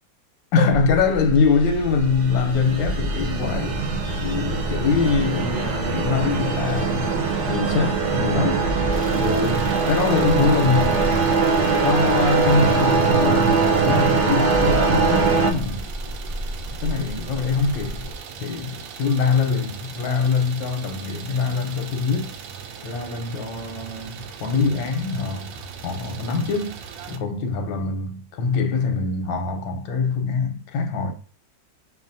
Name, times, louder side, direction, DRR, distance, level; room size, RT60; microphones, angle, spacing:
voice 1, 0.5-3.8 4.2-8.6 9.1-11.1 11.8-15.9 16.8-18.1 18.4-22.3 22.8-25.5 25.8-26.8 27.1-31.1, left 4 dB, 90° left, 1.5 m, -23 dB
sound 1, 0.7-18.2, equal, 25° right, 0.9 m, -32 dB
sound 2, 1.4-15.5, right 4 dB, 65° right, 1.1 m, -22 dB
Idling, 8.9-27.2, right 7 dB, 85° right, 1.4 m, -39 dB
5.6 x 2.4 x 2.6 m
omnidirectional pair, 2.0 m